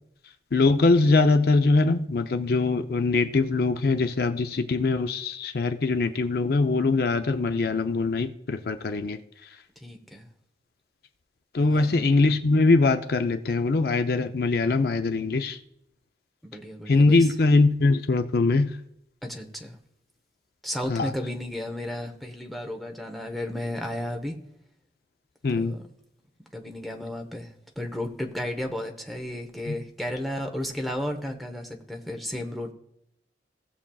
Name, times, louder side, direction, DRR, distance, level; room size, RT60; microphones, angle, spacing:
voice 1, 0.5-9.2 11.5-15.6 16.9-18.8 20.9-21.1 25.4-25.8 29.7-29.8, left 3 dB, 55° left, 7 dB, 0.5 m, -22 dB
voice 2, 9.8-10.3 11.7-12.0 16.4-17.3 19.2-19.8 20.6-24.4 25.5-25.8 26.5-32.7, left 1 dB, ahead, 2 dB, 0.9 m, -33 dB
17.5 x 7.1 x 2.3 m, 0.78 s
head